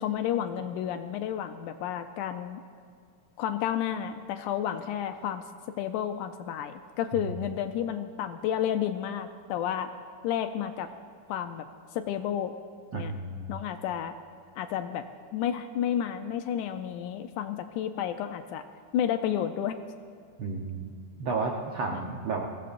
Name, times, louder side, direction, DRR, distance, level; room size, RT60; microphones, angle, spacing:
voice 1, 0.0-2.6 3.4-5.4 5.8-9.9 10.2-10.9 11.3-11.7 11.9-12.5 12.9-13.1 13.5-14.1 14.6-15.1 15.3-18.7 18.9-19.8 21.9-22.1, left 10 dB, 80° left, 8 dB, 1.9 m, -31 dB
voice 2, 12.9-13.6 20.4-20.9 21.2-22.5, right 3 dB, 85° right, 0 dB, 1.2 m, -32 dB
22.0 x 16.0 x 2.5 m, 2.3 s
omnidirectional pair, 3.9 m